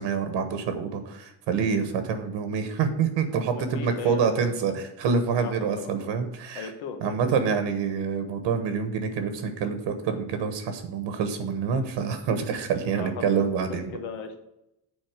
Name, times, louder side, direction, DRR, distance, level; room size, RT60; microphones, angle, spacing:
voice 1, 0.0-6.7 7.0-13.9, right 6 dB, 65° right, 8 dB, 1.2 m, -27 dB
voice 2, 3.5-4.7 5.3-6.1 6.5-7.4 12.9-14.4, left 6 dB, 85° left, 7 dB, 1.4 m, -38 dB
7.6 x 4.3 x 6.5 m, 0.86 s
cardioid pair, 135°, 46 cm